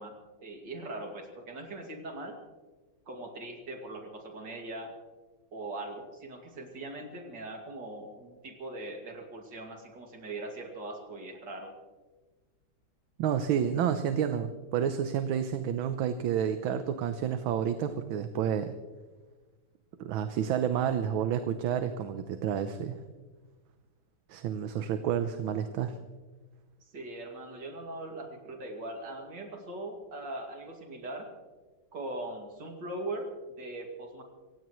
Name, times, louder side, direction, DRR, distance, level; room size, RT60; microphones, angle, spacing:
voice 1, 0.0-2.4 3.1-4.9 5.5-11.7 26.9-31.3 31.9-33.3 33.6-34.2, right 2 dB, 60° right, 2 dB, 3.0 m, -40 dB
voice 2, 13.2-18.8 20.0-23.0 24.3-25.9, right 8 dB, 75° right, 9 dB, 1.6 m, -30 dB
27.0 x 16.5 x 3.1 m, 1.3 s
omnidirectional pair, 2.2 m